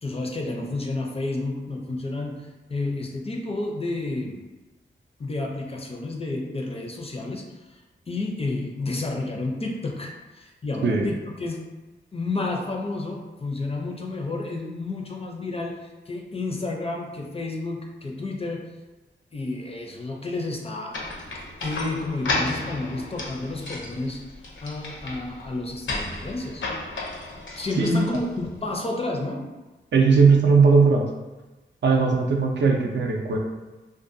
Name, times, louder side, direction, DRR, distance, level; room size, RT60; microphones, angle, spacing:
voice 1, 0.0-4.4 5.2-7.4 7.7-7.8 8.1-11.7 12.1-18.7 19.3-21.0 21.6-24.2 24.6-26.6 27.6-29.5, left 2 dB, 30° left, 1 dB, 0.4 m, -30 dB
sound 1, 20.9-28.6, left 2 dB, 75° left, 0.6 m, -33 dB
voice 2, 29.9-31.1 31.8-33.4, right 4 dB, 65° right, 2 dB, 0.4 m, -18 dB
2.6 x 2.2 x 2.5 m, 1.1 s
wide cardioid pair, 85°, 20 cm